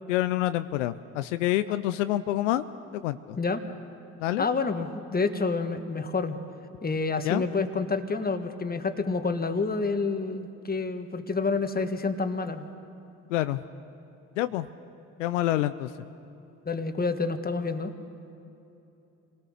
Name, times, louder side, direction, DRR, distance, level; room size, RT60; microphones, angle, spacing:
voice 1, 0.1-2.6 2.9-3.4 4.2-4.4 7.2-7.4 13.3-13.6 14.4-14.7 15.2-15.9, left 14 dB, 80° left, 13 dB, 0.5 m, -27 dB
voice 2, 4.4-6.4 6.8-12.6 16.6-17.9, left 4 dB, 25° left, 8 dB, 1.7 m, -28 dB
26.5 x 18.5 x 6.6 m, 2.9 s
hypercardioid pair, 50°, 36 cm